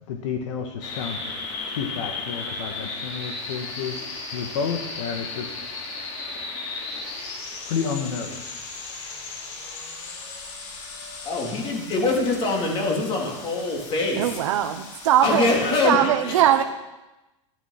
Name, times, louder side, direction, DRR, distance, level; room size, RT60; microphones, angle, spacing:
voice 1, 0.1-4.0 4.3-5.5 7.7-8.6, left 6 dB, 75° left, 4 dB, 1.9 m, -31 dB
sound 1, 0.8-15.8, left 3 dB, 60° left, 3.9 m, -36 dB
voice 2, 11.2-14.4 15.2-16.4, left 3 dB, 35° left, 0 dB, 3.8 m, -24 dB
voice 3, 14.2-16.6, right 11 dB, 75° right, 7 dB, 1.0 m, -21 dB
13.5 x 11.0 x 6.0 m, 1.0 s
supercardioid pair, 135°, 16 cm